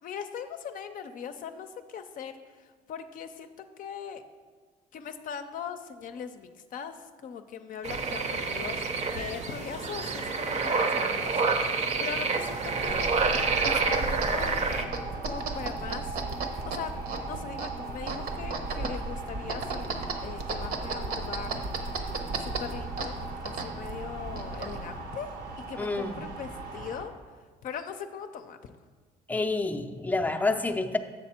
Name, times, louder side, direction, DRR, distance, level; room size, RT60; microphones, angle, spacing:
voice 1, 0.0-4.2 4.9-13.1 13.6-14.6 15.2-16.2 16.7-16.9 17.2-21.6 22.4-23.1 23.4-25.3 25.7-27.1 27.6-28.7, left 7 dB, 55° left, 8 dB, 0.5 m, -40 dB
sound 1, 7.8-14.8, right 4 dB, 40° right, 0.7 m, -28 dB
sound 2, 12.3-27.1, right 3 dB, 90° right, 1.3 m, -39 dB
sound 3, 12.8-25.0, right 3 dB, 65° right, 1.0 m, -35 dB
voice 2, 25.8-26.3 29.3-31.0, left 3 dB, 10° left, 6 dB, 0.5 m, -28 dB
7.2 x 6.6 x 4.3 m, 1.5 s
cardioid pair, 110°, 17 cm